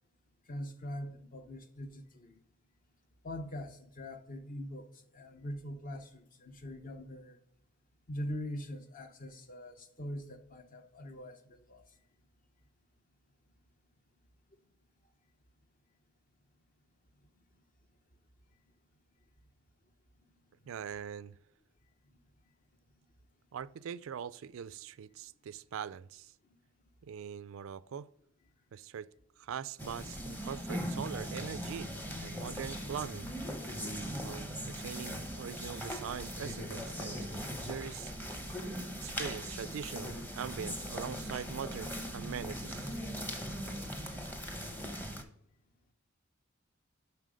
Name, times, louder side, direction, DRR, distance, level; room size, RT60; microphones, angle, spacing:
voice 1, 0.5-2.4 3.2-4.9 5.1-7.4 8.1-11.8, equal, 40° left, 0.8 m, -42 dB
voice 2, 20.7-21.3 23.5-26.3 27.0-28.1 28.7-29.1 29.4-31.9 32.2-33.3 34.2-37.2 37.6-38.1 39.0-43.0, right 8 dB, 70° right, 0.3 m, -42 dB
sound 1, 29.8-45.2, equal, 10° left, 0.8 m, -40 dB
7.5 x 5.8 x 5.0 m
head